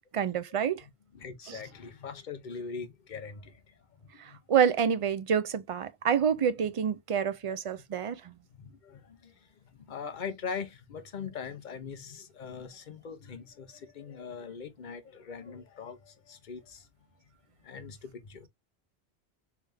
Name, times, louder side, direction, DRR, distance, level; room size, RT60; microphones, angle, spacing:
voice 1, 0.1-0.8 1.5-1.6 4.2-8.3, right 7 dB, 55° right, 0.3 m, -28 dB
voice 2, 1.1-3.6 4.3-4.4 8.5-9.3 9.7-16.8 17.6-18.5, left 6 dB, 50° left, 0.8 m, -41 dB
3.5 x 3.3 x 3.3 m
omnidirectional pair, 1.1 m